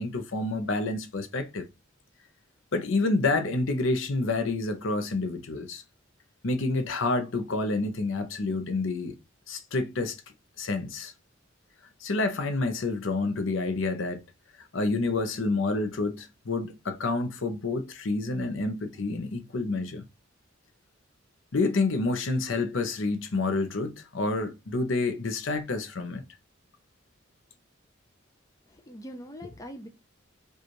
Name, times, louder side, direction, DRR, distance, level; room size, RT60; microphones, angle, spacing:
voice 1, 0.0-1.7 2.7-5.8 6.4-9.2 9.5-10.2 10.6-11.1 12.0-14.2 14.6-20.0 21.5-26.2, left 3 dB, 65° left, 0.6 m, -28 dB
voice 2, 28.7-29.9, equal, 15° left, 0.5 m, -42 dB
5.1 x 2.4 x 2.9 m
head